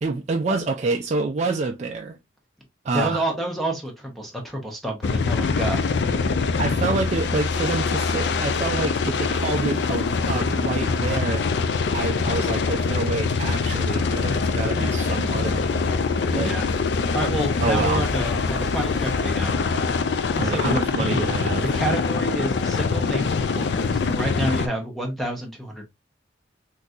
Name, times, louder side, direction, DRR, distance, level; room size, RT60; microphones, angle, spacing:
voice 1, 0.0-2.2 2.8-3.2 6.6-11.4 11.9-16.0 16.3-16.6 17.6-18.0 20.4-21.7, right 3 dB, 40° right, 0.3 m, -27 dB
voice 2, 2.9-5.8 16.4-16.7 17.1-19.5 20.4-21.2 21.7-25.9, right 1 dB, ahead, 0.7 m, -29 dB
sound 1, 5.0-24.7, left 4 dB, 65° left, 0.4 m, -24 dB
3.8 x 2.7 x 2.4 m
head